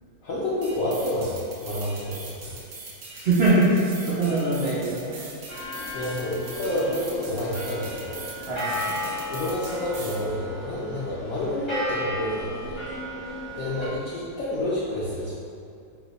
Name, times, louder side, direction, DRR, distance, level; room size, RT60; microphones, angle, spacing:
voice 1, 0.2-2.6 5.9-8.2 9.3-12.8 13.6-15.3, left 1 dB, 75° left, -9 dB, 0.7 m, -29 dB
sound 1, 0.6-10.2, right 3 dB, 70° right, 1.0 m, -42 dB
voice 2, 3.1-5.1 8.5-8.9, right 2 dB, 90° right, -10 dB, 0.5 m, -22 dB
sound 2, 5.5-13.9, equal, 30° left, 0.5 m, -34 dB
2.9 x 2.0 x 3.8 m, 2.4 s
omnidirectional pair, 1.9 m